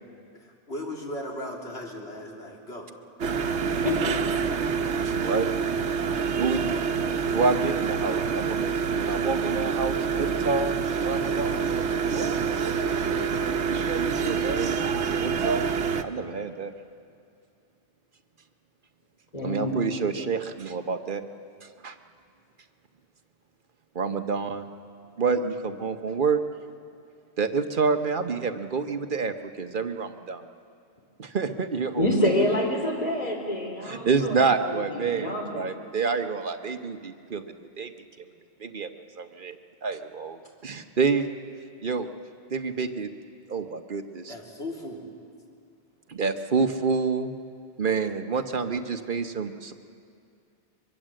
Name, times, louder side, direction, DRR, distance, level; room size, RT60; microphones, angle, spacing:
voice 1, 0.3-2.9 44.3-45.0, left 1 dB, 65° left, -2 dB, 3.5 m, -37 dB
sound 1, 3.2-16.0, right 6 dB, 75° right, 1.1 m, -27 dB
voice 2, 3.6-4.2 19.3-19.8 32.0-34.4 34.6-35.7, left 1 dB, 35° left, 0 dB, 4.2 m, -27 dB
voice 3, 5.0-5.5 6.4-6.8 7.3-11.7 12.1-12.4 13.7-14.8 15.1-15.7 16.0-16.7 19.4-21.2 21.8-21.9 23.9-24.7 25.2-26.4 27.4-30.4 31.2-32.1 33.8-37.9 38.6-38.9 39.2-41.3 41.8-42.1 42.5-43.1 43.5-44.3 46.1-47.4 47.8-49.7, right 5 dB, 50° right, 7 dB, 1.1 m, -28 dB
23.0 x 23.0 x 7.6 m, 2.4 s
omnidirectional pair, 1.2 m